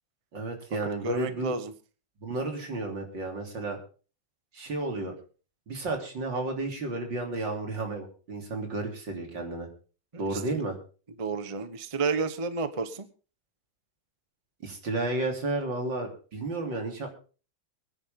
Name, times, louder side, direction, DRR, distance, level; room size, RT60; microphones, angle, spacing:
voice 1, 0.3-1.5 2.2-3.8 4.5-5.1 5.7-9.7 10.2-10.8 14.6-17.1, right 2 dB, 75° right, 2 dB, 4.0 m, -32 dB
voice 2, 0.8-1.7 10.1-10.6 11.2-13.1, right 4 dB, 25° right, 11 dB, 0.9 m, -31 dB
23.0 x 10.0 x 3.7 m, 0.37 s
omnidirectional pair, 2.0 m